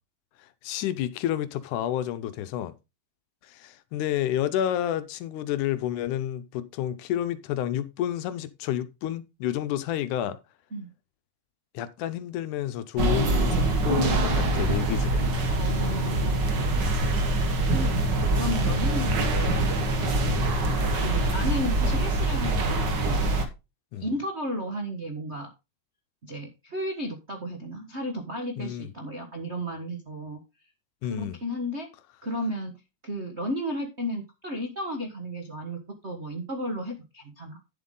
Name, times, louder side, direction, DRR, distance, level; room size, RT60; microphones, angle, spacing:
voice 1, 0.4-2.8 3.4-10.4 11.7-15.2 17.1-17.3 20.3-20.5 23.9-24.1 28.6-28.9 31.0-31.4, left 11 dB, 75° left, 2.1 m, -30 dB
sound 1, 13.0-23.4, right 2 dB, 50° right, 1.3 m, -24 dB
voice 2, 15.5-16.4 17.7-17.9 18.3-19.7 20.6-23.3 24.0-25.5 26.2-30.4 31.0-31.9 32.2-32.7 33.0-37.6, equal, 70° right, 0.6 m, -33 dB
10.0 x 7.5 x 3.8 m
omnidirectional pair, 3.7 m